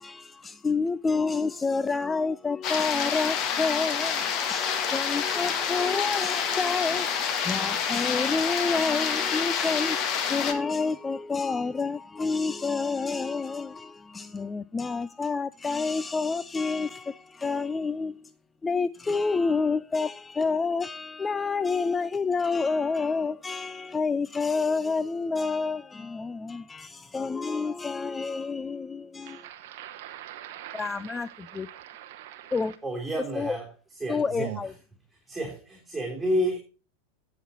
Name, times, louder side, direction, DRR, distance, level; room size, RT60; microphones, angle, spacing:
voice 1, 0.0-18.3 18.6-29.4 30.7-31.7 32.5-32.8 33.4-33.6 34.1-34.7, left 4 dB, 15° left, 0.3 m, -29 dB
sound 1, 2.6-10.5, left 7 dB, 35° left, 1.5 m, -28 dB
voice 2, 29.2-32.8 34.4-34.6, right 13 dB, 50° right, 0.8 m, -42 dB
voice 3, 32.8-33.7 34.0-34.5 35.3-36.6, equal, ahead, 3.1 m, -30 dB
16.5 x 6.2 x 2.7 m
figure-of-eight pair, 90°, 0 cm